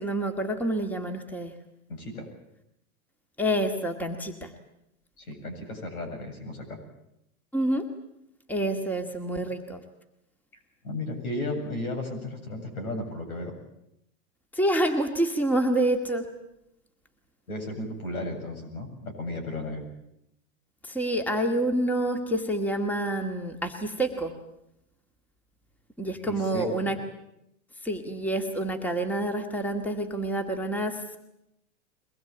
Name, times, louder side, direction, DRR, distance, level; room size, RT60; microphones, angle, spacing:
voice 1, 0.0-1.5 3.4-4.5 7.5-7.9 8.5-9.8 14.6-16.3 20.8-24.3 26.0-27.0 27.8-31.2, right 1 dB, 5° left, 6 dB, 2.0 m, -27 dB
voice 2, 1.9-2.3 5.2-6.8 10.8-13.6 17.5-19.8 26.1-27.0, left 1 dB, 90° left, 5 dB, 7.9 m, -34 dB
23.0 x 20.0 x 8.9 m, 0.83 s
hypercardioid pair, 135°, 42 cm